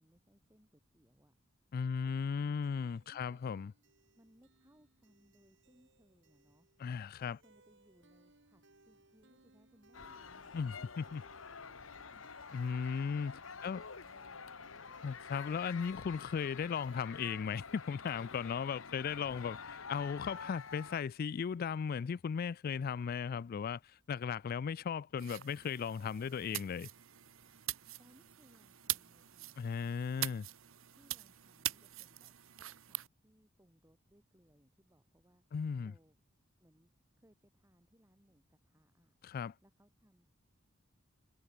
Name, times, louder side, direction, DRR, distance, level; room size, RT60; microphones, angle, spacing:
voice 1, 0.0-1.3 4.1-6.7 7.2-10.8 12.0-12.3 13.4-14.8 28.0-30.4 30.9-35.4 35.8-36.2 36.6-36.9 37.2-39.1 39.6-40.3, equal, 15° right, 5.1 m, -68 dB
voice 2, 1.7-3.7 6.8-7.4 10.5-11.2 12.5-13.8 15.0-26.9 29.6-30.5 35.5-35.9 39.2-39.5, left 6 dB, 45° left, 0.3 m, -37 dB
sound 1, 2.6-17.0, right 3 dB, 65° right, 6.6 m, -67 dB
sound 2, 9.9-21.0, left 5 dB, 80° left, 1.4 m, -48 dB
sound 3, 25.2-33.1, right 15 dB, 90° right, 1.2 m, -43 dB
head